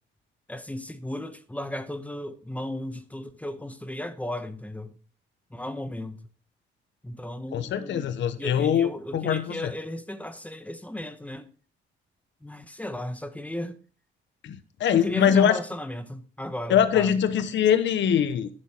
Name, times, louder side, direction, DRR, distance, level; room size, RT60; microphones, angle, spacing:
voice 1, 0.5-5.0 5.5-6.2 7.0-11.5 12.4-13.8 14.9-17.1, left 1 dB, 5° left, 1.2 m, -35 dB
voice 2, 7.5-9.7 14.4-15.6 16.7-18.5, left 8 dB, 70° left, 1.0 m, -23 dB
11.0 x 8.8 x 4.5 m
cardioid pair, 90°, 20 cm